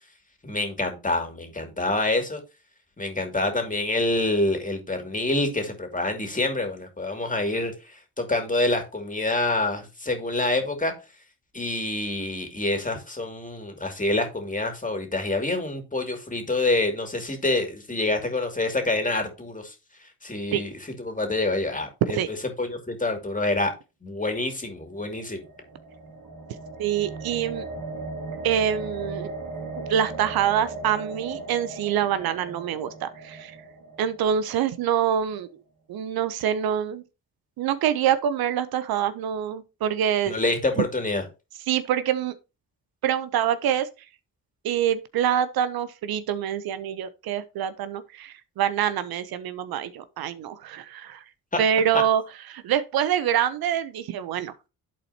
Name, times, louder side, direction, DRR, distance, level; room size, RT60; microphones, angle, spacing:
voice 1, 0.4-2.4 3.0-10.9 11.5-19.7 20.2-22.2 22.6-23.7 24.0-25.4 40.2-41.2, left 2 dB, 20° left, 2.4 m, -27 dB
sound 1, 24.8-35.0, right 3 dB, 60° right, 2.4 m, -38 dB
voice 2, 26.8-27.7 28.4-29.3 29.8-33.6 34.0-35.5 35.9-37.0 37.6-40.4 41.7-42.3 43.0-43.9 44.6-51.2 51.6-52.2 52.5-54.5, right 9 dB, 75° right, 0.7 m, -25 dB
11.5 x 4.2 x 2.8 m
supercardioid pair, 60°, 37 cm